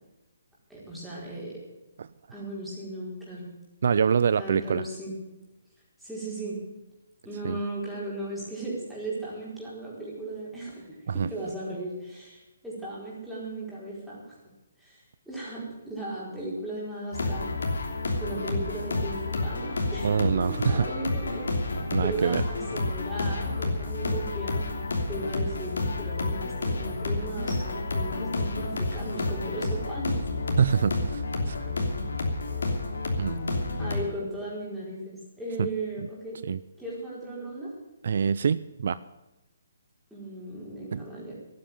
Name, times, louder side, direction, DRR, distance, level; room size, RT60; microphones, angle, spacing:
voice 1, 0.7-1.6 2.3-3.5 4.4-5.2 6.0-6.6 7.2-14.4 14.8-17.8 18.2-30.2 33.8-36.4 36.8-37.7 40.1-41.3, right 1 dB, ahead, -8 dB, 4.7 m, -36 dB
voice 2, 3.8-4.8 7.4-7.6 11.1-11.3 20.0-20.9 21.9-22.4 30.6-31.6 33.2-33.4 35.6-35.7 36.4-36.6 38.0-39.0 40.9-41.1, right 6 dB, 60° right, 16 dB, 0.4 m, -25 dB
sound 1, 17.1-34.0, left 2 dB, 85° left, 3.0 m, -30 dB
12.0 x 9.5 x 9.1 m, 1.0 s
hypercardioid pair, 160°, 0 cm